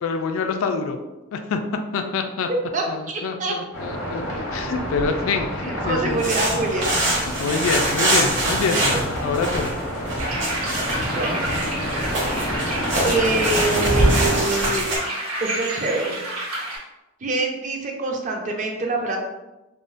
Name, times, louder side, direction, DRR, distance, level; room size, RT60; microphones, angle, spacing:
voice 1, 0.0-1.0 1.3-1.6 1.9-2.5 2.9-6.4 7.2-9.7, left 4 dB, 70° left, 6 dB, 0.3 m, -26 dB
voice 2, 2.7-3.6 5.6-6.9 8.9-9.4 11.1-11.4 13.0-14.8 15.4-16.2 17.2-19.2, right 3 dB, 35° right, 1 dB, 0.4 m, -25 dB
sound 1, 3.7-14.4, equal, 90° left, 0.9 m, -27 dB
sound 2, 6.1-15.0, right 1 dB, 55° right, 1.0 m, -25 dB
sound 3, 10.2-16.8, right 1 dB, 85° right, 0.9 m, -29 dB
3.7 x 2.0 x 2.5 m, 1.0 s
head